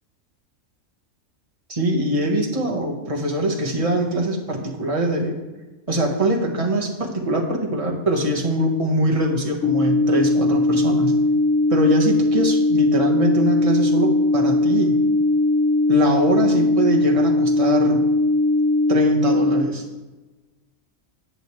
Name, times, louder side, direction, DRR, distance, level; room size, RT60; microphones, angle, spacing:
voice 1, 1.7-5.3 5.9-11.1 11.7-14.9 15.9-18.0 18.9-19.8, right 1 dB, 25° right, -1 dB, 1.5 m, -23 dB
sound 1, 9.6-19.6, left 2 dB, 60° left, 0.9 m, -19 dB
10.5 x 9.1 x 3.3 m, 1.2 s
omnidirectional pair, 1.4 m